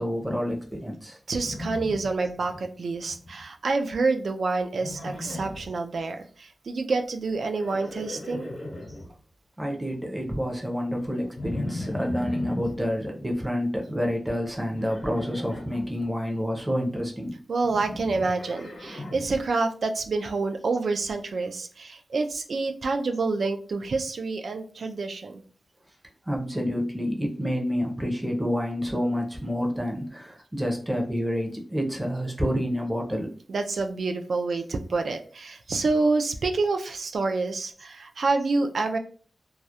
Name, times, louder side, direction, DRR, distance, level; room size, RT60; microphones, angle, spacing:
voice 1, 0.0-1.2 9.6-17.4 26.2-33.3, equal, 10° right, 0 dB, 0.5 m, -28 dB
voice 2, 1.3-8.5 17.5-25.4 33.5-39.0, right 3 dB, 70° right, 6 dB, 0.3 m, -27 dB
Livestock farm animals working animals, 1.4-2.6 2.9-3.4 4.7-5.7 7.3-9.1 11.4-12.7 14.7-15.8 17.6-19.4, left 1 dB, 70° left, 0.6 m, -36 dB
2.3 x 2.0 x 2.7 m, 0.42 s
wide cardioid pair, 145°, 0 cm